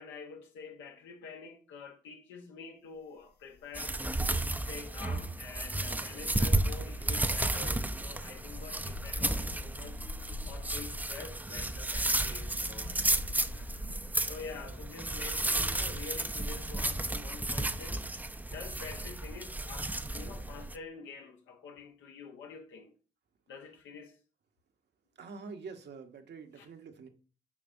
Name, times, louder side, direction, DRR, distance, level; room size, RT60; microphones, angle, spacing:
voice 1, 0.0-4.0 4.7-10.0 10.5-13.7 14.3-18.1 18.5-22.9 23.5-24.2 26.5-26.7, left 5 dB, 80° left, 1.1 m, -47 dB
sound 1, 3.5-4.3 4.6-18.1 18.4-18.6, left 2 dB, 55° left, 0.8 m, -47 dB
sound 2, 3.7-20.7, right 2 dB, 10° right, 0.5 m, -33 dB
voice 2, 25.2-27.1, right 5 dB, 60° right, 1.0 m, -46 dB
7.1 x 5.1 x 2.6 m
hypercardioid pair, 45°, 20 cm